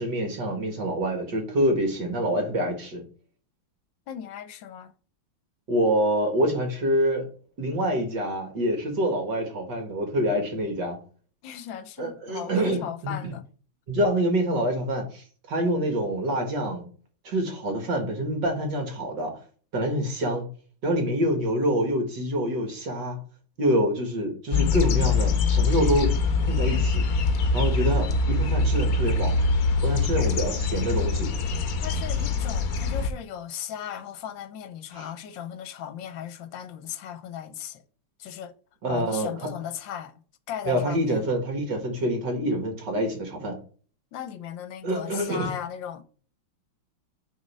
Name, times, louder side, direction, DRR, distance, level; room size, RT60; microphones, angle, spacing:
voice 1, 0.0-3.0 5.7-7.3 7.6-11.0 12.0-13.1 13.9-16.8 17.2-19.4 19.7-20.5 20.8-23.2 23.6-26.2 26.5-27.0 27.5-29.3 29.8-31.3 34.9-35.1 38.8-39.5 40.7-43.6 44.8-45.5, right 1 dB, 60° right, 2.2 m, -26 dB
voice 2, 4.1-4.9 11.4-13.4 31.8-37.8 38.2-38.5 38.9-40.1 40.5-41.2 44.1-46.0, left 9 dB, 70° left, 1.4 m, -37 dB
sound 1, 24.5-33.1, left 4 dB, 55° left, 1.1 m, -24 dB
6.4 x 4.0 x 5.4 m
omnidirectional pair, 2.2 m